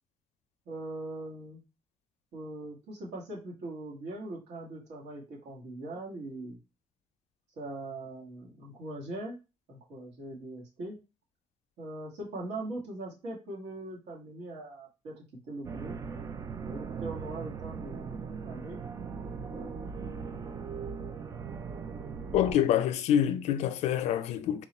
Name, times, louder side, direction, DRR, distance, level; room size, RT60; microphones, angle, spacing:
voice 1, 0.6-1.6 2.3-6.6 7.6-9.4 9.7-11.0 11.8-15.1 15.5-15.9 16.6-18.8 19.5-19.8, right 2 dB, 85° right, 1.6 m, -41 dB
sound 1, 15.6-22.5, right 5 dB, 30° right, 0.4 m, -39 dB
voice 2, 22.3-24.6, left 10 dB, 85° left, 0.5 m, -26 dB
3.8 x 2.4 x 4.1 m
cardioid pair, 160°, 11 cm